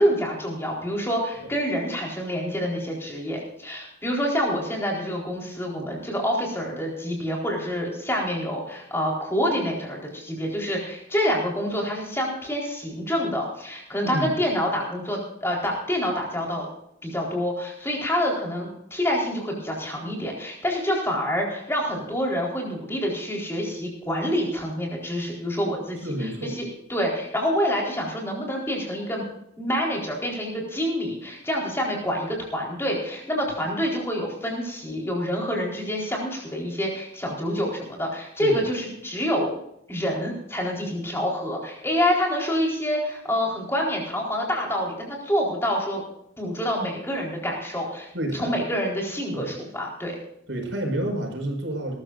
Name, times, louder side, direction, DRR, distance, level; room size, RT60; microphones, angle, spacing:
voice 1, 0.0-16.7 17.0-26.6 26.9-29.2 29.6-39.5 39.9-46.0 46.4-50.2, equal, 15° left, -2 dB, 4.1 m, -27 dB
voice 2, 14.0-14.3 26.0-26.6 38.4-38.6 48.1-48.5 49.3-49.5 50.5-52.0, right 1 dB, 80° right, 3 dB, 5.3 m, -29 dB
20.5 x 14.0 x 2.6 m, 0.77 s
head